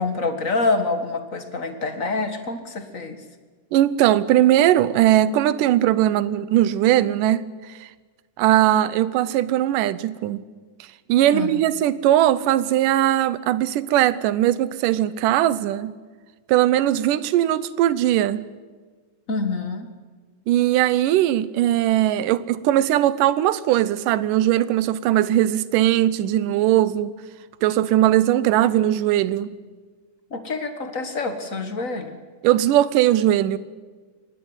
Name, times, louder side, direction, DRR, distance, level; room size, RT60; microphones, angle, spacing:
voice 1, 0.0-3.2 11.3-11.5 19.3-19.9 30.3-32.1, left 3 dB, 35° left, 8 dB, 1.5 m, -26 dB
voice 2, 3.7-7.9 8.4-10.4 11.1-15.9 16.5-18.5 20.5-27.2 27.6-29.5 32.4-33.6, right 13 dB, 85° right, 17 dB, 2.4 m, -19 dB
24.5 x 19.5 x 8.1 m, 1.4 s
omnidirectional pair, 3.7 m